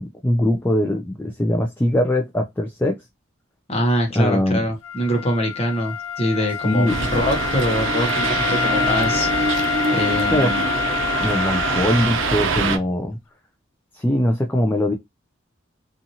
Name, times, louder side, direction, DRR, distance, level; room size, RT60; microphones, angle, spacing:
voice 1, 0.0-3.0 4.2-4.6 6.6-7.0 10.3-10.5 11.2-13.2 13.9-14.9, left 1 dB, 10° left, 0.3 m, -21 dB
voice 2, 3.7-9.5 9.9-10.6, equal, 30° left, 0.8 m, -24 dB
Wind instrument woodwind instrument, 4.8-12.6, left 9 dB, 90° left, 0.5 m, -27 dB
sound 1, 6.9-12.8, right 4 dB, 75° right, 0.6 m, -24 dB
2.8 x 2.5 x 2.6 m
head